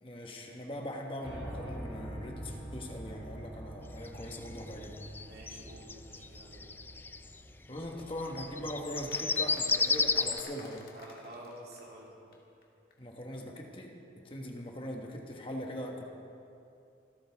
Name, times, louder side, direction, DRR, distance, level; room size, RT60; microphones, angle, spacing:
voice 1, 0.0-5.0 7.7-10.9 13.0-16.0, equal, 30° left, 1 dB, 1.3 m, -41 dB
Piano, 1.2-9.2, equal, 5° right, 4.3 m, -46 dB
sound 1, 4.1-7.3 8.2-10.4, left 4 dB, 10° left, 0.3 m, -31 dB
voice 2, 5.2-6.7 10.9-12.2, right 1 dB, 55° right, -3 dB, 2.8 m, -49 dB
sound 2, 8.4-12.1 12.3-12.4 12.6-12.7 12.9-13.0, left 3 dB, 50° left, 1.9 m, -53 dB
25.5 x 13.0 x 3.5 m, 2.6 s
head